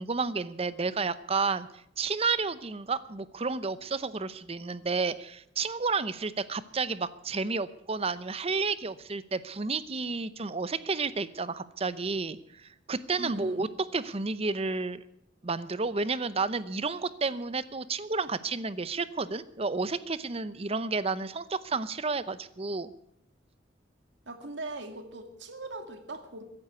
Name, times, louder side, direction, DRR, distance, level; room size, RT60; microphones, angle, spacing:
voice 1, 0.0-1.7 2.0-13.7 13.9-15.0 15.4-22.9, right 4 dB, 30° right, 15 dB, 0.7 m, -31 dB
voice 2, 13.2-13.8 24.3-26.4, right 2 dB, 70° right, 7 dB, 2.2 m, -40 dB
15.0 x 11.0 x 8.1 m, 0.75 s
head